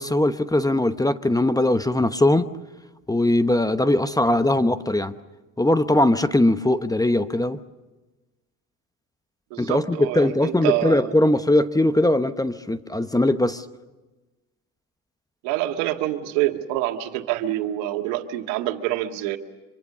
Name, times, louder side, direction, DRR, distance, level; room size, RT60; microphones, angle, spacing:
voice 1, 0.0-2.5 3.1-5.1 5.6-7.6 9.6-13.6, left 1 dB, 10° left, 12 dB, 1.0 m, -20 dB
voice 2, 9.5-11.1 15.4-19.4, right 14 dB, 75° right, 6 dB, 1.9 m, -26 dB
25.5 x 24.5 x 6.8 m, 1.2 s
hypercardioid pair, 75°, 42 cm